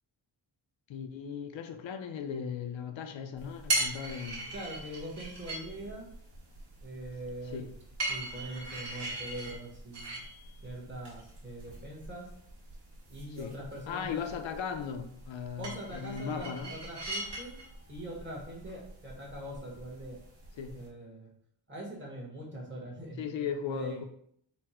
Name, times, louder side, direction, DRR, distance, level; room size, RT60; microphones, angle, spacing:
voice 1, 0.9-4.5 7.4-7.7 13.3-13.6 13.9-16.8 20.6-20.7 23.2-24.1, left 7 dB, 80° left, 7 dB, 0.6 m, -37 dB
sound 1, 3.4-20.9, right 2 dB, 65° right, 1.5 m, -40 dB
voice 2, 4.5-6.1 6.8-7.7 8.1-10.2 10.6-12.3 13.1-14.2 15.6-17.6 17.9-20.2 20.7-21.3 21.7-24.1, right 1 dB, 25° right, -3 dB, 1.1 m, -42 dB
4.3 x 2.0 x 4.2 m, 0.69 s
wide cardioid pair, 150°, 45 cm